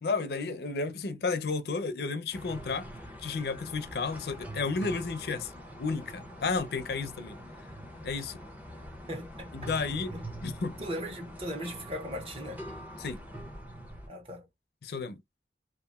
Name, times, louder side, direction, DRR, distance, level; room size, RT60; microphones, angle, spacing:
voice 1, 0.0-2.9 3.2-5.5 5.8-7.4 8.0-8.4 9.5-10.1 10.4-10.8 13.0-13.2 14.8-15.2, left 4 dB, 60° left, 0.5 m, -32 dB
sound 1, 2.3-14.1, equal, 10° right, 0.6 m, -44 dB
voice 2, 9.1-9.5 10.1-10.2 10.8-12.7 14.1-14.5, equal, 35° right, 0.9 m, -38 dB
2.8 x 2.4 x 2.2 m
head